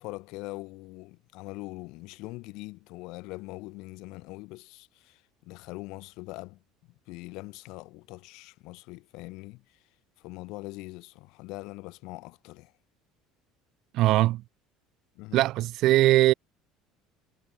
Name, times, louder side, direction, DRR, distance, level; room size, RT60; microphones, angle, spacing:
voice 1, 0.0-6.6 7.1-9.8 10.2-12.7 15.2-15.5, left 23 dB, 55° left, 3.7 m, -42 dB
voice 2, 13.9-14.4 15.3-16.3, right 16 dB, 50° right, 1.0 m, -21 dB
figure-of-eight pair, 65°, 0 cm